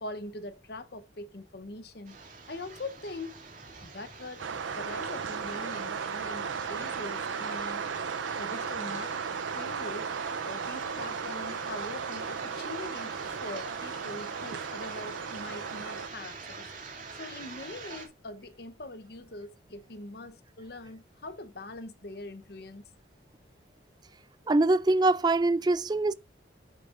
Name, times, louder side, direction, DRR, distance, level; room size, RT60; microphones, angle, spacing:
voice 1, 0.0-2.2 2.5-3.4 3.8-4.5 4.8-7.8 8.4-9.1 9.6-10.1 10.4-16.7 17.1-22.8, left 2 dB, 55° left, 0.9 m, -42 dB
sound 1, 2.0-18.1, right 4 dB, 45° right, 2.3 m, -45 dB
sound 2, 4.4-16.1, right 6 dB, 90° right, 0.6 m, -35 dB
voice 2, 24.5-26.1, right 2 dB, 20° right, 0.3 m, -23 dB
9.5 x 7.7 x 2.5 m
head